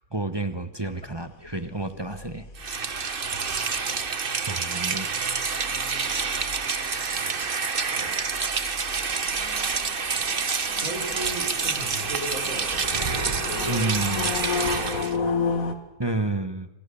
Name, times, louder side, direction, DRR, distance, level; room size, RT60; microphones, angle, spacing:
voice 1, 0.0-2.4 4.4-5.4 13.7-14.4 16.0-16.7, right 2 dB, 20° right, 9 dB, 1.2 m, -30 dB
sound 1, 0.9-15.7, left 5 dB, 75° left, 2.5 m, -34 dB
Rain, 2.6-15.2, right 5 dB, 40° right, 1.4 m, -28 dB
voice 2, 6.0-6.5 7.1-7.4 7.9-8.1 10.1-10.2 10.8-13.9 14.3-15.7, right 1 dB, 70° right, -1 dB, 5.7 m, -37 dB
27.5 x 26.5 x 7.1 m, 1.0 s
omnidirectional pair, 1.5 m